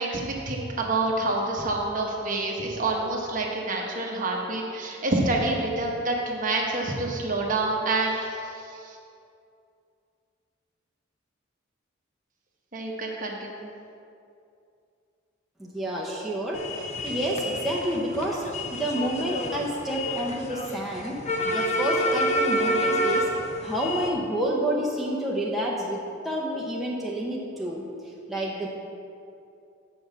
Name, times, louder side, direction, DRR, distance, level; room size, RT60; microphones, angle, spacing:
voice 1, 0.0-9.0 12.7-13.7, right 2 dB, 40° right, -1 dB, 1.1 m, -27 dB
voice 2, 15.6-16.7 17.0-23.3 23.6-26.0 26.2-27.8 28.3-28.7, right 1 dB, ahead, -4 dB, 0.7 m, -29 dB
sound 1, 16.5-24.1, equal, 35° left, 0.6 m, -28 dB
7.8 x 4.8 x 6.8 m, 2.6 s
head